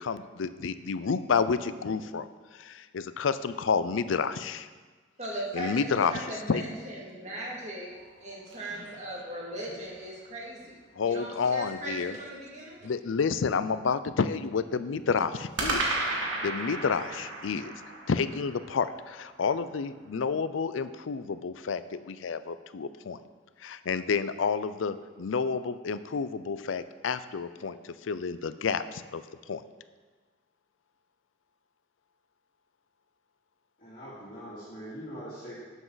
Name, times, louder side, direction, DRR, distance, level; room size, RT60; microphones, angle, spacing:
voice 1, 0.0-2.3 2.5-4.7 5.5-6.6 11.0-12.1 12.8-15.8 16.2-17.7 18.1-23.2 23.6-29.6, left 5 dB, 80° left, 13 dB, 0.5 m, -30 dB
voice 2, 5.2-7.9 8.2-10.7 11.0-12.8, right 1 dB, 35° right, -4 dB, 2.2 m, -38 dB
sound 1, 7.9-9.8 15.6-19.8, right 2 dB, 80° right, 1.8 m, -35 dB
voice 3, 33.8-35.5, equal, 45° left, -11 dB, 2.6 m, -42 dB
12.0 x 7.2 x 4.0 m, 1.4 s
head